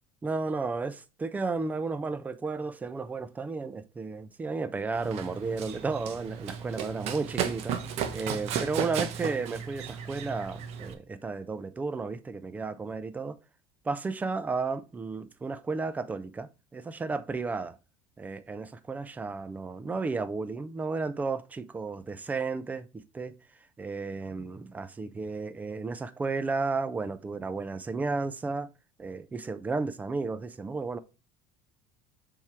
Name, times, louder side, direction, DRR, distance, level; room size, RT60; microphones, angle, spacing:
voice 1, 0.2-7.8 8.1-13.4 13.8-17.8 18.2-23.4 23.8-28.7 29.0-31.0, right 4 dB, 10° right, 0.4 m, -33 dB
Run, 4.9-10.9, right 7 dB, 50° right, 1.0 m, -35 dB
7.2 x 3.6 x 4.6 m
cardioid pair, 160°, 14 cm